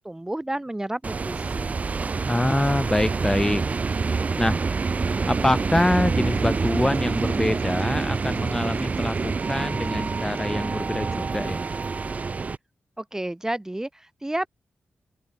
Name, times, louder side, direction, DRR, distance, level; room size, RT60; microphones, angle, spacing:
voice 1, 0.0-1.8 13.0-14.5, right 1 dB, 15° right, 2.1 m, -31 dB
sound 1, 1.0-12.6, right 4 dB, 40° right, 0.4 m, -26 dB
voice 2, 2.3-3.6 4.4-4.6 5.2-11.6, left 1 dB, 15° left, 1.9 m, -25 dB
sound 2, 5.3-10.6, right 8 dB, 85° right, 6.0 m, -53 dB
open air
cardioid pair, 75°, 4 cm